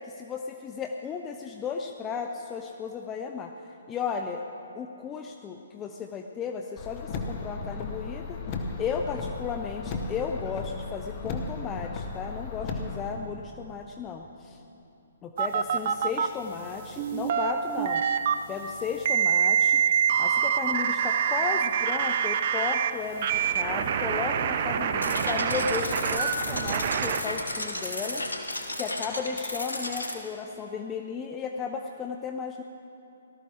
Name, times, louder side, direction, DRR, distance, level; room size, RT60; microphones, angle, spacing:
voice 1, 0.1-3.5 3.9-4.4 4.8-8.4 8.8-14.6 15.2-18.0 18.5-19.8 20.2-28.2 28.7-32.6, left 6 dB, 20° left, 4 dB, 0.6 m, -34 dB
Car, 6.8-13.1, left 4 dB, 35° left, 1.3 m, -35 dB
sound 1, 15.4-16.3 17.0-18.3 19.0-22.9 23.2-27.2, right 8 dB, 45° right, 0.6 m, -25 dB
sound 2, 25.0-30.1, left 1 dB, 85° left, 1.4 m, -34 dB
18.5 x 13.0 x 3.6 m, 2.8 s
figure-of-eight pair, 130°, 0 cm